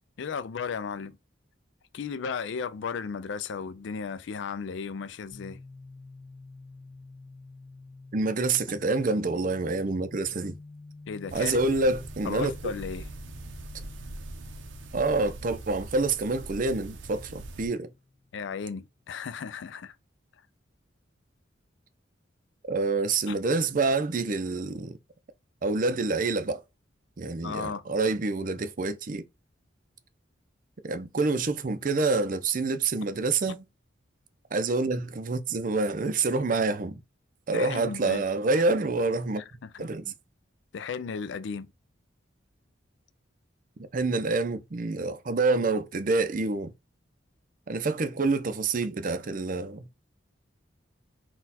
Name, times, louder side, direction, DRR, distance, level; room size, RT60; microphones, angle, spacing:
voice 1, 0.2-1.2 1.9-5.6 11.1-11.7 12.2-13.1 18.3-20.0 23.3-23.4 27.4-27.8 33.5-33.6 37.5-38.2 38.5-38.6 39.4-39.9 40.7-41.7, left 5 dB, 70° left, 0.4 m, -35 dB
sound 1, 5.3-18.9, left 3 dB, 40° left, 1.0 m, -50 dB
voice 2, 8.1-10.5 11.3-12.5 14.9-17.9 22.7-25.0 25.6-26.6 27.2-29.2 30.8-33.7 34.5-37.0 37.5-39.4 39.8-40.1 43.9-46.7 47.7-49.9, right 3 dB, 45° right, 0.5 m, -27 dB
sound 2, 11.3-17.7, right 2 dB, 80° right, 0.7 m, -42 dB
4.2 x 2.3 x 4.0 m
head